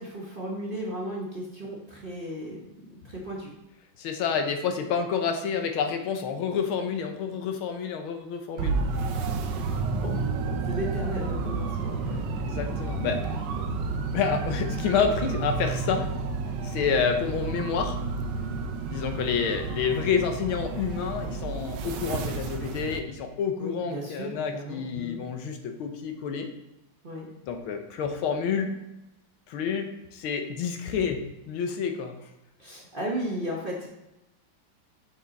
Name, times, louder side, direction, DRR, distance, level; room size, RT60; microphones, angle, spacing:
voice 1, 0.0-3.5 8.9-9.0 9.4-9.6 10.0-12.2 13.0-13.4 23.6-25.2 27.0-27.3 32.6-33.9, equal, 40° right, -3 dB, 0.9 m, -35 dB
voice 2, 4.0-8.8 12.1-13.2 14.1-16.1 16.6-18.0 18.9-26.5 27.4-28.7 29.5-32.1, left 6 dB, 85° left, 6 dB, 1.7 m, -29 dB
sound 1, 8.6-23.0, right 4 dB, 70° right, 1.2 m, -31 dB
6.7 x 5.3 x 4.0 m, 0.94 s
omnidirectional pair, 2.2 m